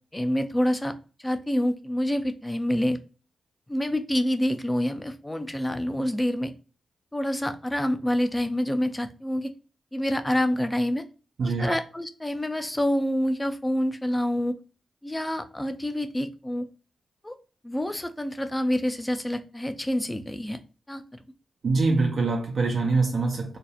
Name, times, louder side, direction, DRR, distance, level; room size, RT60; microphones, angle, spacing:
voice 1, 0.1-0.9 1.2-3.0 3.7-6.5 7.1-9.5 9.9-11.0 11.6-14.5 15.0-16.7 17.2-17.3 17.6-20.6 20.9-21.0, left 1 dB, 15° left, 0.4 m, -27 dB
voice 2, 11.4-11.8 21.6-23.6, right 3 dB, 65° right, 0.4 m, -24 dB
2.7 x 2.0 x 2.3 m
supercardioid pair, 50°, 0 cm